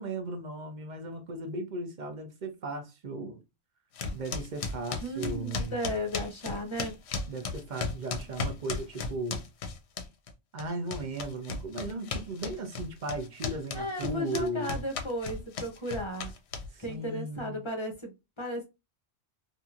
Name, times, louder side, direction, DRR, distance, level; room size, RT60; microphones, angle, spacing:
voice 1, 0.0-3.4 4.1-5.8 7.3-9.4 10.5-14.8 16.7-17.6, right 2 dB, 45° right, 0.7 m, -36 dB
sound 1, 4.0-10.3 10.6-16.9, left 4 dB, 65° left, 0.8 m, -35 dB
voice 2, 5.0-6.9 13.7-16.3 16.8-18.6, equal, 30° left, 0.6 m, -35 dB
2.8 x 2.6 x 2.4 m
omnidirectional pair, 1.3 m